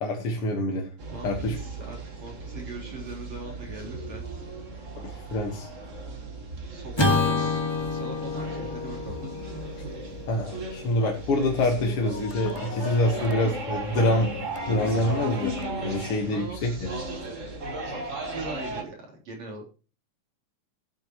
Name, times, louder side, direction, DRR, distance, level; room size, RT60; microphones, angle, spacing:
voice 1, 0.0-0.9 1.2-1.6 5.0-5.7 10.3-15.5 15.8-16.7, left 1 dB, 50° left, 1 dB, 2.1 m, -26 dB
sound 1, 1.0-18.8, right 2 dB, 35° right, 1.4 m, -36 dB
voice 2, 1.1-4.3 6.7-7.6 7.9-9.2 15.9-17.3 18.3-19.6, right 2 dB, 55° right, -2 dB, 4.8 m, -41 dB
Acoustic guitar / Strum, 6.9-11.4, left 3 dB, 10° left, 1.3 m, -29 dB
sound 2, 12.1-16.5, left 9 dB, 75° left, 2.1 m, -40 dB
15.0 x 9.3 x 3.1 m, 0.35 s
omnidirectional pair, 3.8 m